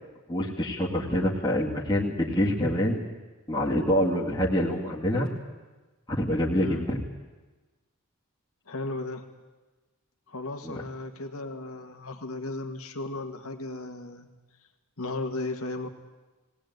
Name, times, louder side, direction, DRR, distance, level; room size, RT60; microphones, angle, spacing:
voice 1, 0.3-3.0 3.5-5.3 6.1-7.0 10.7-10.8, equal, 20° left, -4 dB, 2.2 m, -26 dB
voice 2, 8.7-9.3 10.3-14.3 15.0-15.9, left 2 dB, 75° left, 5 dB, 1.8 m, -35 dB
19.5 x 18.0 x 9.4 m, 1.2 s
head